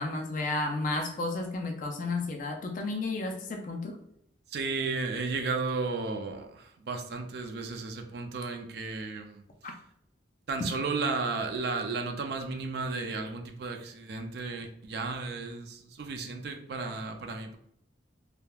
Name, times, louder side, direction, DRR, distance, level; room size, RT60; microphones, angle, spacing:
voice 1, 0.0-3.9, left 2 dB, 40° left, 2 dB, 0.3 m, -32 dB
voice 2, 4.5-9.4 10.5-17.6, right 4 dB, 55° right, 5 dB, 0.4 m, -34 dB
3.2 x 2.1 x 2.3 m, 0.72 s
head